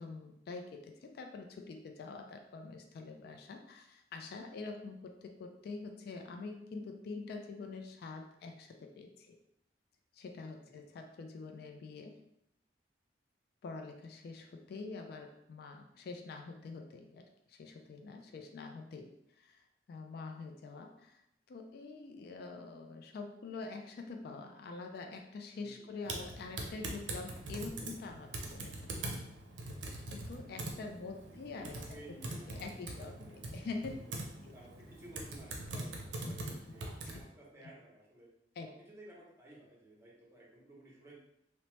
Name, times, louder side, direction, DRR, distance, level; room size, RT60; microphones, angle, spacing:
voice 1, 0.0-9.4 10.1-12.2 13.6-19.1 19.4-21.2 21.5-29.2 30.1-32.0 32.5-33.9 34.4-34.6 36.3-36.4 36.7-36.8 37.1-37.2 37.6-37.7 38.6-38.7, left 3 dB, 60° left, 4 dB, 0.3 m, -46 dB
voice 2, 10.4-10.8 18.1-18.4 25.5-25.9 30.7-33.1 33.3-33.6 34.0-34.1 34.5-38.3 38.7-41.1, right 1 dB, 15° right, -4 dB, 0.7 m, -56 dB
Typing, 26.0-37.2, right 2 dB, 85° right, 0.5 m, -43 dB
2.8 x 2.1 x 3.0 m, 0.78 s
head